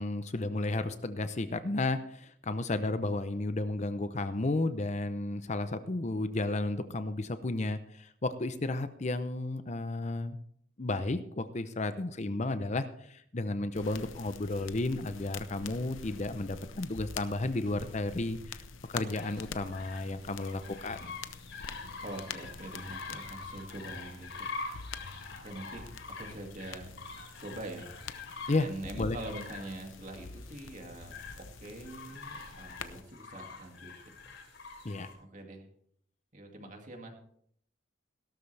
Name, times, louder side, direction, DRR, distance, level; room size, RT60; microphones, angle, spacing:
voice 1, 0.0-10.4 10.8-18.6 18.9-21.1 28.5-28.7 29.0-29.2 34.8-35.1, left 2 dB, 35° left, 11 dB, 0.7 m, -33 dB
sound 1, 13.7-33.0, left 5 dB, 90° left, 0.8 m, -46 dB
sound 2, 19.1-35.1, left 4 dB, 70° left, 3.3 m, -46 dB
voice 2, 22.0-24.9 25.4-25.8 26.1-26.9 27.4-28.0 28.6-34.3 35.3-35.7 36.3-37.1, right 1 dB, 40° right, 3 dB, 2.3 m, -44 dB
17.0 x 12.5 x 3.4 m, 0.66 s
head